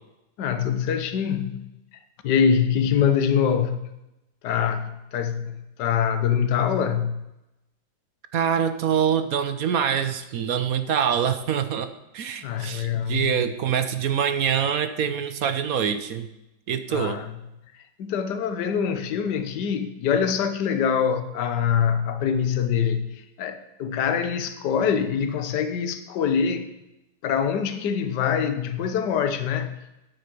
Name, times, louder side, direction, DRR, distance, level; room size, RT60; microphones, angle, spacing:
voice 1, 0.4-1.7 2.2-3.9 4.4-7.3 12.4-13.4 16.9-17.3 18.0-26.7 27.2-29.7, left 7 dB, 65° left, 9 dB, 1.5 m, -24 dB
voice 2, 8.3-11.9 12.1-16.3 16.7-17.2, right 8 dB, 60° right, 10 dB, 1.0 m, -25 dB
9.6 x 8.8 x 6.9 m, 0.92 s
omnidirectional pair, 2.0 m